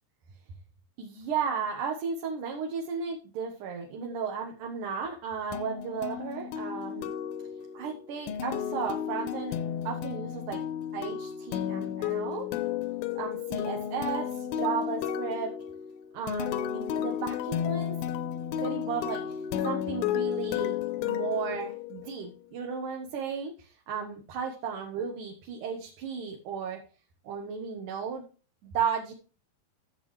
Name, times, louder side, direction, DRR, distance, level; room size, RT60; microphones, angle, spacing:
voice 1, 1.0-7.1 7.7-10.6 10.9-12.5 13.2-15.5 16.1-17.9 18.6-19.4 19.6-26.8 27.2-28.2 28.6-29.1, right 6 dB, 65° right, 1 dB, 2.6 m, -34 dB
sound 1, 5.5-22.2, left 10 dB, 90° left, 2.6 m, -33 dB
13.0 x 7.6 x 3.2 m, 0.36 s
omnidirectional pair, 4.1 m